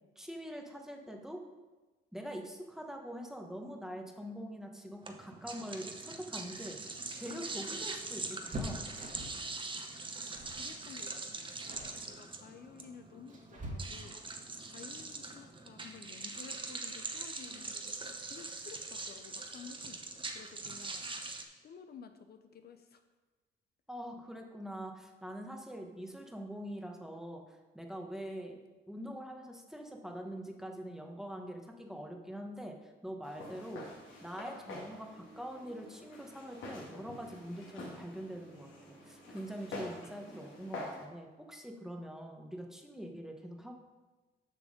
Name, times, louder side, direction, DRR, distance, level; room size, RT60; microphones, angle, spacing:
voice 1, 0.2-1.4 2.1-6.8 7.2-8.9 23.9-28.6 28.9-33.9 34.2-43.7, equal, ahead, 2 dB, 1.1 m, -44 dB
sound 1, 5.0-21.4, right 3 dB, 25° right, 0.9 m, -43 dB
sound 2, 6.8-9.5 10.3-10.6 10.9-11.2 11.6-12.0 12.8-14.3 16.0-16.1 16.5-16.6 17.8-18.2 18.5-18.6 18.9-19.1, equal, 40° right, 1.9 m, -45 dB
voice 2, 10.4-14.2 14.6-20.0 20.3-21.1 21.6-23.0, left 6 dB, 55° left, 8 dB, 0.6 m, -53 dB
Walk footsteps, 33.2-41.0, left 2 dB, 80° left, 2.3 m, -47 dB
6.9 x 6.1 x 5.2 m, 1.2 s
cardioid pair, 90°, 20 cm